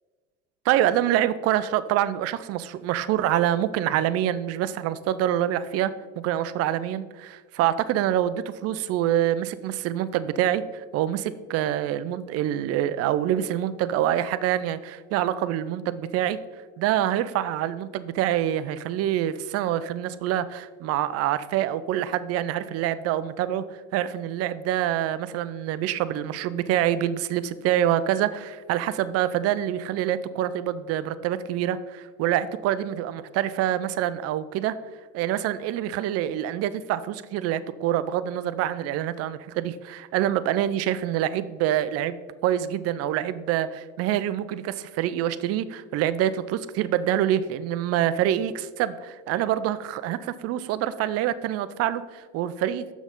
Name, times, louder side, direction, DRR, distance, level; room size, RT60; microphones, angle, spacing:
voice 1, 0.7-16.4 16.8-23.6 23.9-34.8 35.1-42.2 42.4-52.9, right 11 dB, 45° right, 14 dB, 0.5 m, -26 dB
7.0 x 6.0 x 3.8 m, 1.4 s
hypercardioid pair, 85°, 36 cm